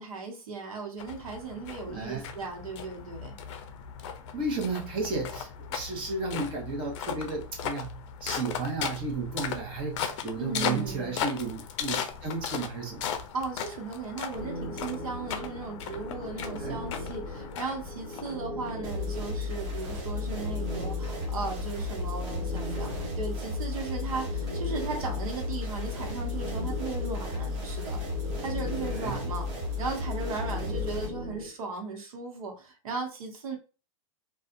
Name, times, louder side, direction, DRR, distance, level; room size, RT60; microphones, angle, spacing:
voice 1, 0.0-3.4 10.4-11.3 13.3-28.0 28.4-29.5 29.8-33.6, right 4 dB, 85° right, 1.0 m, -37 dB
sound 1, 1.0-18.7, left 7 dB, 55° left, 0.5 m, -37 dB
voice 2, 1.9-2.2 4.3-13.2 16.6-16.8 28.9-29.2, right 3 dB, 30° right, 0.9 m, -33 dB
sound 2, 14.3-31.5, left 1 dB, 30° left, 0.9 m, -39 dB
sound 3, 18.8-31.1, left 3 dB, 50° right, 1.1 m, -34 dB
2.5 x 2.3 x 2.5 m
supercardioid pair, 150°, 18 cm